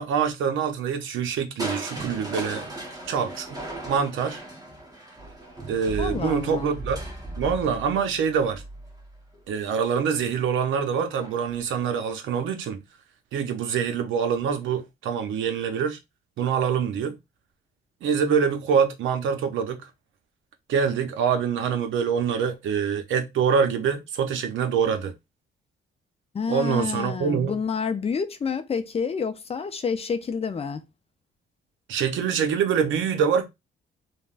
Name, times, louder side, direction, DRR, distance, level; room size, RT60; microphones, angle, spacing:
voice 1, 0.0-2.7 3.1-3.6 3.9-4.4 5.7-7.0 7.4-8.6 9.5-12.8 13.3-16.0 16.4-17.2 18.0-19.9 20.7-25.1 26.5-27.6 31.9-33.5, right 7 dB, 75° right, 0.7 m, -25 dB
Crushing, 1.6-9.5 11.1-11.6 12.1-12.2, right 1 dB, 20° right, 1.1 m, -37 dB
voice 2, 6.0-6.7 26.3-30.8, left 5 dB, 30° left, 0.4 m, -28 dB
3.4 x 2.1 x 2.4 m
cardioid pair, 90°, 20 cm